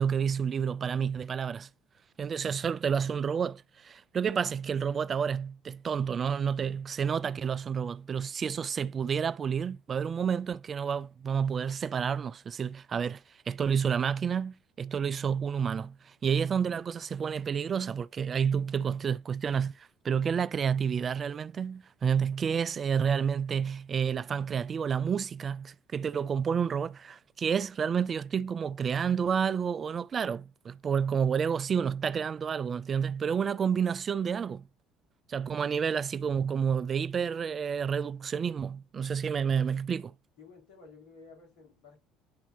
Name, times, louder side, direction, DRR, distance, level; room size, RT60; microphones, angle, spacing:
voice 1, 0.0-1.7 2.2-34.6 35.3-40.1, right 7 dB, 40° right, 0.3 m, -30 dB
voice 2, 40.4-42.0, left 4 dB, 65° left, 4.1 m, -53 dB
10.5 x 4.2 x 2.6 m
hypercardioid pair, 65°, 0 cm